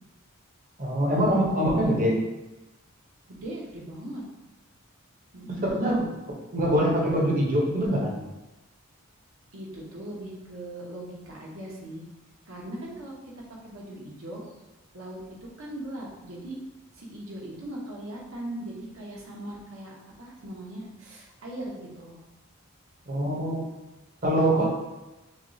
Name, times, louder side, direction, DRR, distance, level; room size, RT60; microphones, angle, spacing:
voice 1, 0.8-2.2 5.5-6.1 6.5-8.2 23.1-23.6 24.2-24.7, right 1 dB, 40° right, -2 dB, 0.9 m, -24 dB
voice 2, 1.5-2.0 3.3-4.2 5.3-5.7 9.5-12.0 12.5-13.1 13.6-14.4 14.9-15.2 15.6-16.6 16.9-22.2 24.3-24.7, right 1 dB, 70° right, -3 dB, 1.0 m, -39 dB
6.1 x 2.3 x 2.7 m, 1.0 s
head